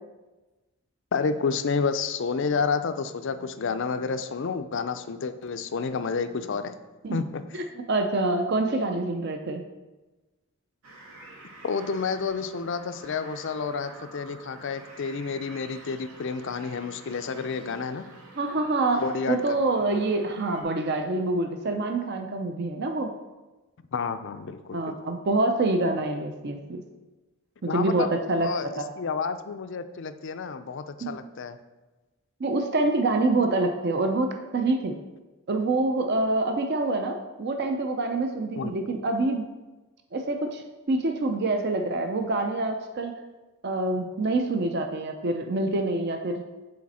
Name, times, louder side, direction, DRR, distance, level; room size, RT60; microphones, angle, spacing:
voice 1, 1.1-6.8 7.1-7.4 11.6-18.1 19.0-19.6 23.9-25.0 27.7-28.7 29.0-31.6 38.6-38.7, left 5 dB, 55° left, 10 dB, 0.4 m, -30 dB
voice 2, 7.5-9.6 18.4-23.1 24.7-26.8 27.6-28.9 31.0-31.2 32.4-35.0 35.5-39.5 40.1-40.6 40.9-43.2 43.6-46.4, right 2 dB, 50° right, 5 dB, 0.5 m, -26 dB
sound 1, 10.8-20.6, right 2 dB, 85° right, 1.5 m, -48 dB
8.5 x 4.1 x 4.2 m, 1.2 s
head